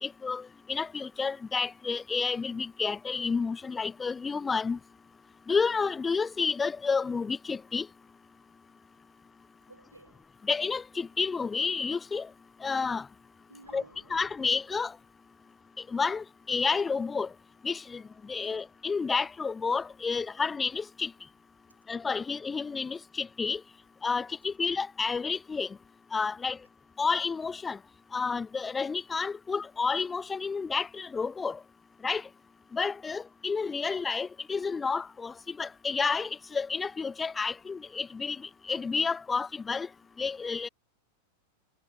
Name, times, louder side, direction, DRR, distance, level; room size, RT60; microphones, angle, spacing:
voice 1, 0.0-4.8 5.5-7.9 10.5-12.3 12.6-13.1 13.7-13.8 14.1-14.9 15.9-17.3 17.6-18.0 18.3-21.1 21.9-23.6 24.0-25.7 26.1-26.6 27.0-27.8 28.1-31.6 32.0-32.2 32.7-38.4 38.7-39.9 40.2-40.7, left 5 dB, 15° left, 0.6 m, -30 dB
voice 2, 9.7-10.3 13.5-14.3 21.7-21.8, right 2 dB, 80° right, 3.9 m, -54 dB
figure-of-eight pair, 90°, 0 cm